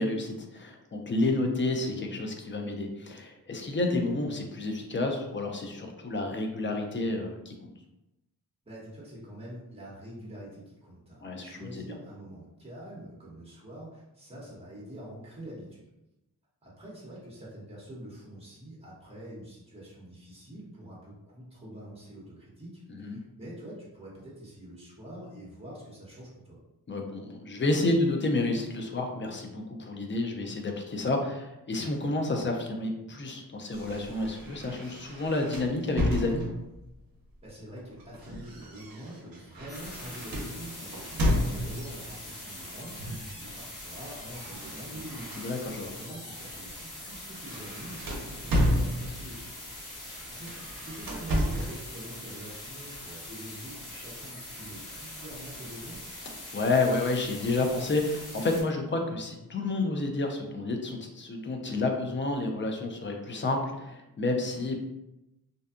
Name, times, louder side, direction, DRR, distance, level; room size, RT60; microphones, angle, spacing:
voice 1, 0.0-7.7 11.2-11.8 22.9-23.2 26.9-36.4 45.4-45.9 56.5-64.8, left 2 dB, 30° left, 3 dB, 0.4 m, -30 dB
voice 2, 8.6-15.9 16.6-26.6 37.4-49.6 50.1-56.0, right 1 dB, 15° right, -6 dB, 0.9 m, -45 dB
sound 1, 33.7-36.8 37.8-42.0 43.0-43.4 43.7-46.0 46.4-46.6 47.0-49.4 50.3-51.8, equal, 70° right, 0.6 m, -32 dB
sound 2, 39.7-58.6, left 1 dB, 55° left, 1.2 m, -43 dB
2.6 x 2.2 x 2.4 m, 0.94 s
wide cardioid pair, 75°, 37 cm